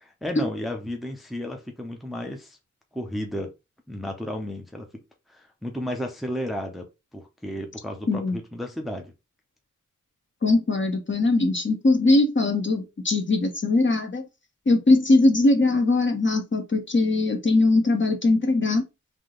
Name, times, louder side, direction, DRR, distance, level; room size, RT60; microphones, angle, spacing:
voice 1, 0.0-2.6 2.9-3.5 3.9-4.9 5.3-6.9 7.1-9.1, left 1 dB, ahead, 0.7 m, -33 dB
voice 2, 10.4-14.2 14.7-18.8, left 2 dB, 35° left, 1.0 m, -21 dB
3.6 x 2.9 x 3.8 m
wide cardioid pair, 90°, 32 cm